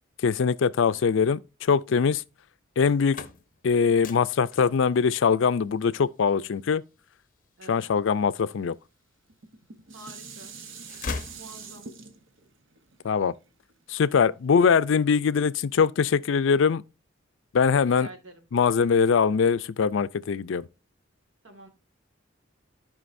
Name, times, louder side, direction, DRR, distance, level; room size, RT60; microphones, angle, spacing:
voice 1, 0.2-2.2 2.8-3.2 3.6-6.8 7.7-8.7 13.0-13.3 13.9-16.8 17.5-18.1 18.5-20.7, left 6 dB, 70° left, 0.4 m, -22 dB
sound 1, 3.0-8.8 9.3-10.2 10.5-12.1, left 4 dB, 45° left, 0.7 m, -41 dB
voice 2, 7.6-7.9 9.9-10.5 11.3-11.9 17.8-18.5 21.4-21.7, right 2 dB, 85° right, 1.9 m, -47 dB
Dishes pots and pans, 9.3-14.6 15.1-15.2, right 5 dB, 70° right, 0.9 m, -45 dB
14.5 x 5.1 x 2.6 m
head